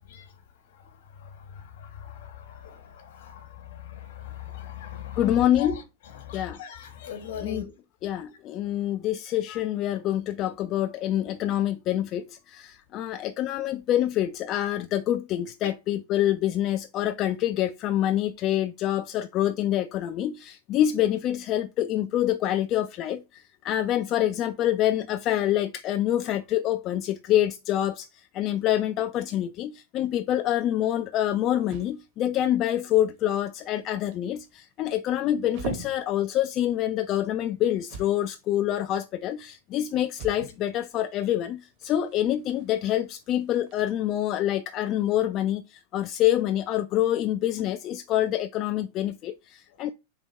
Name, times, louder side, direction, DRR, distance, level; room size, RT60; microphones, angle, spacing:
voice 1, 0.0-7.7 15.6-15.7 39.9-40.0 40.5-40.6 49.7-49.8, left 9 dB, 70° left, 1.3 m, -41 dB
voice 2, 5.2-5.7 6.3-6.6 7.4-7.6 8.0-49.9, left 12 dB, 45° left, 0.3 m, -26 dB
sound 1, 30.4-43.8, right 4 dB, 55° right, 1.1 m, -45 dB
3.6 x 2.9 x 4.1 m
hypercardioid pair, 100°, 0 cm